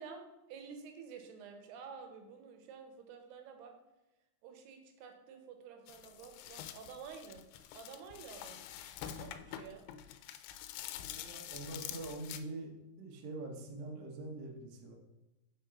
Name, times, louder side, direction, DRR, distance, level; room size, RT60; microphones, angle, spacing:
voice 1, 0.0-3.7 4.4-7.4 7.7-8.6 9.1-9.9, right 6 dB, 80° right, 5 dB, 2.7 m, -50 dB
sound 1, 5.9-12.4, left 10 dB, 85° left, 2.4 m, -46 dB
voice 2, 11.1-12.7 13.0-15.0, right 2 dB, 65° right, 0 dB, 1.7 m, -44 dB
5.2 x 5.0 x 5.7 m, 0.96 s
omnidirectional pair, 4.7 m